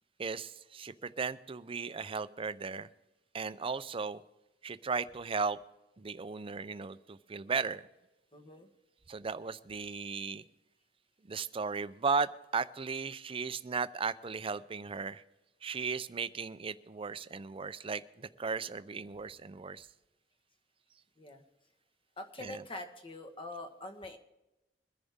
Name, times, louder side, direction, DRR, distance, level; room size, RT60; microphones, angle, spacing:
voice 1, 0.2-2.9 3.3-4.2 4.6-5.6 6.0-7.8 9.1-10.4 11.2-15.2 15.6-19.9 22.4-22.6, right 5 dB, 30° right, 14 dB, 0.5 m, -36 dB
voice 2, 8.3-8.7 21.2-21.4 22.2-24.2, left 2 dB, 30° left, 6 dB, 1.4 m, -44 dB
23.0 x 10.0 x 3.6 m, 0.96 s
head